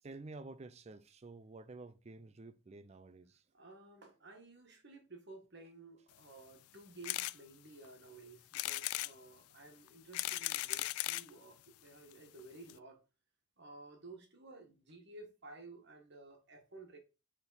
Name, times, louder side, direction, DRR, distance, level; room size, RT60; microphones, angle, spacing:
voice 1, 0.0-3.5, right 3 dB, 30° right, 0.4 m, -51 dB
voice 2, 3.5-13.0 13.6-17.0, right 2 dB, 50° right, 1.4 m, -54 dB
sound 1, 7.0-7.4 7.8-7.9 8.5-9.1 9.9-11.3 12.1-12.2 12.4-12.5 12.7-12.8, left 17 dB, 80° left, 0.3 m, -37 dB
6.9 x 3.6 x 4.0 m
head